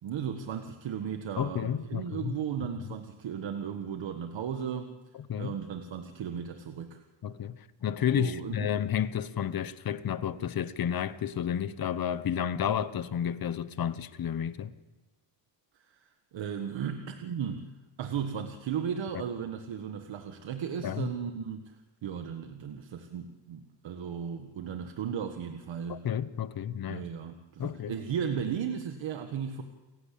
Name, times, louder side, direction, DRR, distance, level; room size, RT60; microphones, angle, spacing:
voice 1, 0.0-4.9 5.4-7.0 8.1-8.8 15.8-17.7 18.0-26.0 26.9-29.6, right 7 dB, 75° right, 1.7 m, -36 dB
voice 2, 1.4-2.3 2.6-2.7 5.3-5.6 7.2-14.7 20.8-21.1 25.9-27.1 27.6-27.9, left 9 dB, 50° left, 1.0 m, -31 dB
29.5 x 16.0 x 8.6 m
wide cardioid pair, 160°, 45 cm